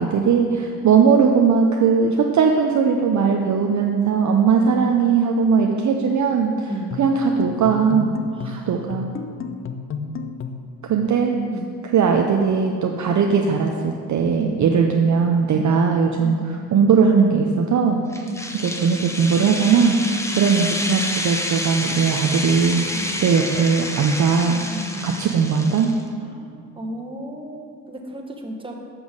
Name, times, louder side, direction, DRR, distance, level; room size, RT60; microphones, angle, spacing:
voice 1, 0.0-6.7 7.0-8.1 8.4-9.1 10.9-11.4 11.9-18.3 18.6-20.0 20.4-22.9 23.2-24.7 25.0-25.9, right 6 dB, 40° right, 2 dB, 0.7 m, -19 dB
voice 2, 4.5-4.9 6.6-6.9 8.4-9.1 11.4-11.7 14.3-15.2 15.5-15.7 16.2-16.4 18.3-18.5 20.1-20.2 22.9-23.1 24.7-25.1 26.2-28.9, right 1 dB, 10° right, 0 dB, 1.3 m, -34 dB
sound 1, 6.9-10.8, left 5 dB, 30° left, 0.5 m, -32 dB
sound 2, 18.1-26.0, left 1 dB, 5° left, 0.9 m, -29 dB
7.1 x 6.1 x 5.2 m, 2.2 s
hypercardioid pair, 60°, 44 cm